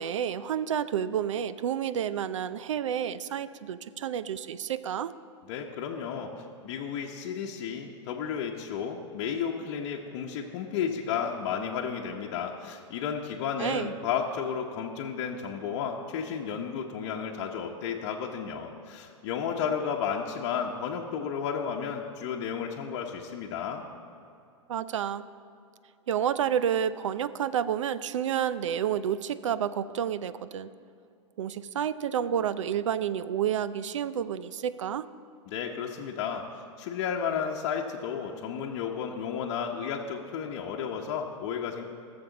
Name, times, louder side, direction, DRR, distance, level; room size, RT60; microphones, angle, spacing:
voice 1, 0.0-5.1 13.6-13.9 24.7-25.2 26.1-30.7 31.4-35.0, right 9 dB, 80° right, 15 dB, 0.5 m, -30 dB
voice 2, 5.5-6.3 6.6-23.8 35.5-36.4 36.8-41.8, left 7 dB, 55° left, -1 dB, 0.9 m, -33 dB
18.5 x 7.0 x 4.0 m, 2.5 s
hypercardioid pair, 110°, 16 cm